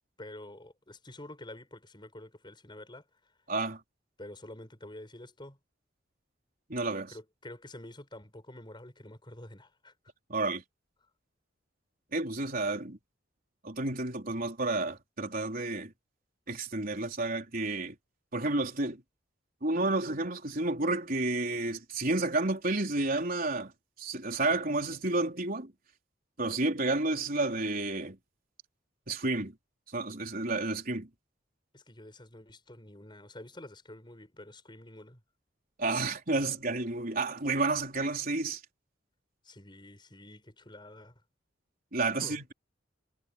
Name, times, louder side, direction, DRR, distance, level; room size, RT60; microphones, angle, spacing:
voice 1, 0.2-3.0 4.2-5.6 7.1-9.9 31.7-35.2 39.4-41.1 42.2-42.4, left 1 dB, 25° left, 7.1 m, -48 dB
voice 2, 3.5-3.8 6.7-7.1 10.3-10.6 12.1-13.0 13.6-15.9 16.5-17.9 18.3-19.0 19.6-23.7 24.0-25.7 26.4-28.2 29.1-29.5 29.9-31.1 35.8-38.6 41.9-42.5, right 2 dB, 50° right, 4.2 m, -31 dB
head